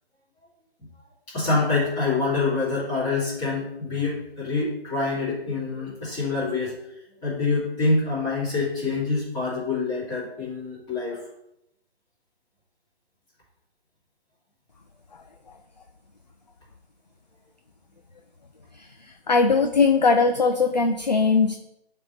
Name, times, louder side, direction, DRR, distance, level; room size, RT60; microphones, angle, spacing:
voice 1, 1.3-6.7 7.2-11.2, left 3 dB, 10° left, -9 dB, 2.4 m, -26 dB
voice 2, 19.3-21.6, left 4 dB, 45° left, 5 dB, 0.4 m, -19 dB
10.0 x 3.5 x 4.0 m, 0.82 s
figure-of-eight pair, 150°, 32 cm